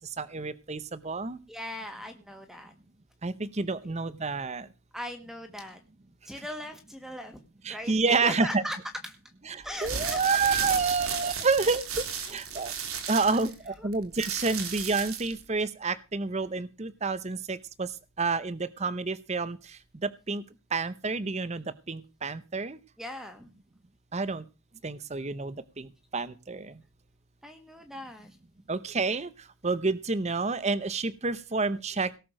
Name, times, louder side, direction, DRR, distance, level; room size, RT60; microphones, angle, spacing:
voice 1, 0.2-1.4 3.2-4.7 7.6-8.6 9.5-12.7 13.1-17.9 18.2-20.4 20.7-22.8 24.1-24.4 24.8-26.7 28.7-29.3 29.6-32.1, right 4 dB, 30° right, 16 dB, 0.7 m, -29 dB
voice 2, 1.5-2.7 3.8-3.9 4.9-5.8 6.2-7.4 7.7-8.8 9.0-9.2 9.6-10.8 13.8-13.9 23.0-23.5 27.4-28.4, equal, ahead, 7 dB, 1.5 m, -39 dB
sound 1, 9.7-15.4, right 6 dB, 90° right, 3.1 m, -34 dB
18.0 x 6.8 x 6.3 m, 0.30 s
head